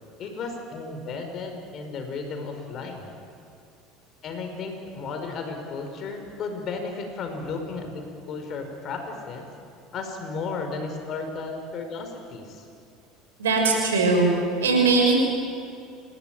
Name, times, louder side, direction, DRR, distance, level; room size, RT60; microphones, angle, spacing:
voice 1, 0.2-3.1 4.2-8.0 8.3-9.5 9.9-12.7, left 4 dB, 45° left, 5 dB, 5.4 m, -34 dB
voice 2, 13.4-14.3 14.6-15.1, right 4 dB, 75° right, 1 dB, 6.3 m, -20 dB
28.0 x 18.0 x 9.3 m, 2.5 s
figure-of-eight pair, 70°, 0 cm